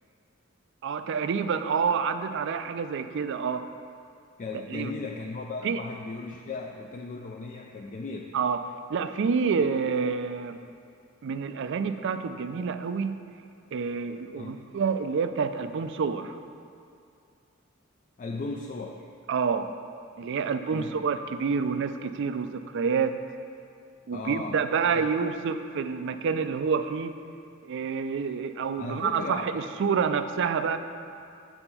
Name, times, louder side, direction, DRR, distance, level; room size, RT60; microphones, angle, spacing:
voice 1, 0.8-3.7 4.7-4.9 5.6-5.8 8.3-10.6 11.2-13.2 13.7-16.4 19.3-19.7 20.2-23.2 24.1-27.1 27.6-30.8, right 5 dB, 65° right, 10 dB, 0.4 m, -28 dB
voice 2, 4.4-8.4 14.3-14.6 18.2-19.1 20.3-21.0 24.1-24.6 24.9-25.1 28.8-29.5, left 3 dB, 40° left, 1 dB, 0.4 m, -37 dB
7.0 x 4.4 x 5.9 m, 2.5 s
head